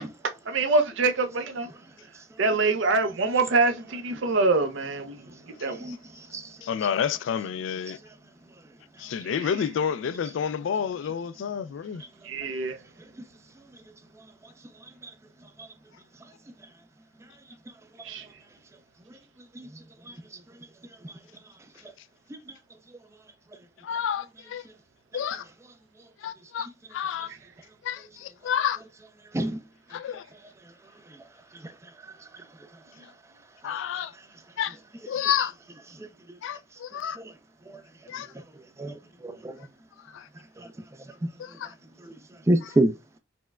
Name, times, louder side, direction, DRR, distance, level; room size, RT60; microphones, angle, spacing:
voice 1, 0.5-1.7 2.4-5.9 9.2-9.5 12.2-12.8 18.0-18.3, right 3 dB, 70° right, 0.5 m, -25 dB
voice 2, 6.6-8.0 9.0-12.0 23.8-24.6 25.1-25.4 26.2-27.3 27.8-28.8 29.9-30.2 33.6-34.1 34.6-34.8 35.1-35.5 36.4-37.2 38.1-38.3 39.6-39.7 40.1-40.3 41.4-41.7, left 8 dB, 75° left, 0.3 m, -30 dB
voice 3, 38.8-39.6 41.2-41.3 42.0-42.1 42.5-42.9, right 1 dB, 15° right, 0.3 m, -26 dB
4.3 x 2.1 x 2.2 m
head